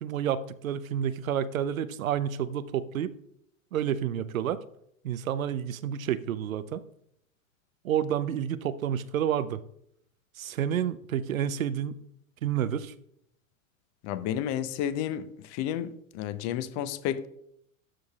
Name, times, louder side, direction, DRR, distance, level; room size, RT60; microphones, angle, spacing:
voice 1, 0.0-3.1 3.7-4.6 5.0-6.8 7.8-9.6 10.4-12.0 12.4-12.9, right 9 dB, 80° right, 15 dB, 0.6 m, -29 dB
voice 2, 14.0-17.3, left 10 dB, 40° left, 13 dB, 0.7 m, -31 dB
12.5 x 6.3 x 2.4 m, 0.73 s
hypercardioid pair, 100°, 40 cm